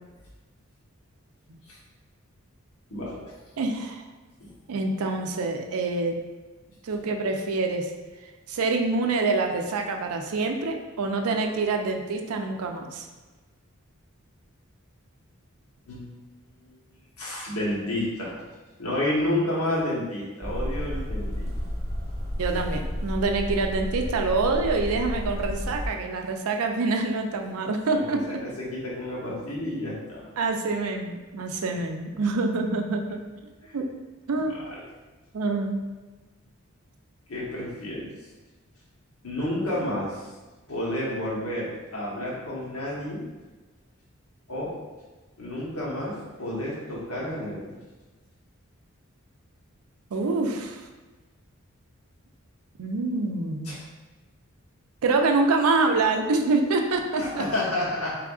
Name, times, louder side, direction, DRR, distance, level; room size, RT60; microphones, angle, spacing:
voice 1, 2.9-3.3 4.4-4.5 15.9-16.1 16.6-16.8 17.2-18.3 18.8-21.5 27.9-30.3 33.6-33.8 34.7-34.8 37.3-38.2 39.2-40.3 40.7-43.3 44.5-44.7 45.4-47.7 53.6-53.8 57.2-58.2, left 1 dB, 80° left, -5 dB, 1.1 m, -30 dB
voice 2, 3.6-4.0 4.7-6.2 6.8-7.9 8.5-13.0 22.4-28.2 30.4-33.2 33.7-33.9 34.3-34.6 35.3-35.8 50.1-50.8 52.8-53.8 55.0-57.4, right 3 dB, 80° right, 3 dB, 0.4 m, -26 dB
sound 1, 20.4-25.9, equal, 15° left, 0.8 m, -31 dB
3.6 x 3.4 x 2.3 m, 1.2 s
head